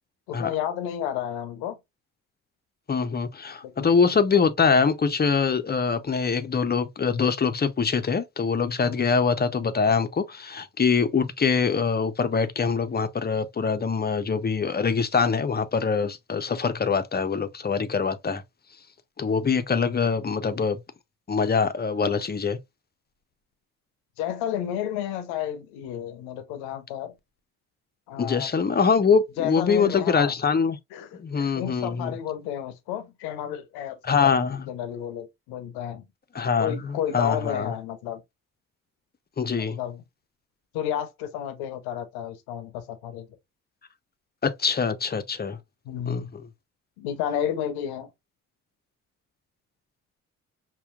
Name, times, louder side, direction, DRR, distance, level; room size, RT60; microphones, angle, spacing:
voice 1, 0.3-1.8 3.6-4.0 8.8-9.0 24.2-27.1 28.1-28.5 29.4-30.3 30.9-36.0 36.6-38.2 39.6-40.0 40.7-43.3 45.9-46.3 47.0-48.1, left 10 dB, 80° left, 0.7 m, -32 dB
voice 2, 2.9-18.4 19.2-20.8 21.3-22.6 28.2-30.8 31.2-32.1 34.0-34.6 36.3-37.7 39.4-39.8 44.4-45.6 46.1-46.2, left 5 dB, 25° left, 0.6 m, -24 dB
5.5 x 2.2 x 2.4 m
hypercardioid pair, 45°, 38 cm